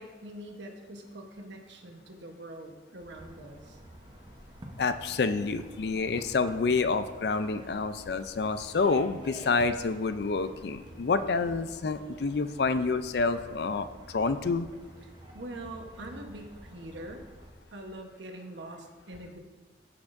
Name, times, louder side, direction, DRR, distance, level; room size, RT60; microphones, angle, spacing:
voice 1, 0.0-3.8 15.3-17.2 17.7-19.4, right 1 dB, 80° right, 3 dB, 1.1 m, -43 dB
sound 1, 3.1-17.5, right 1 dB, 25° right, 0.9 m, -50 dB
voice 2, 4.8-14.7, left 4 dB, 60° left, 11 dB, 0.4 m, -28 dB
14.5 x 5.9 x 2.6 m, 1.3 s
head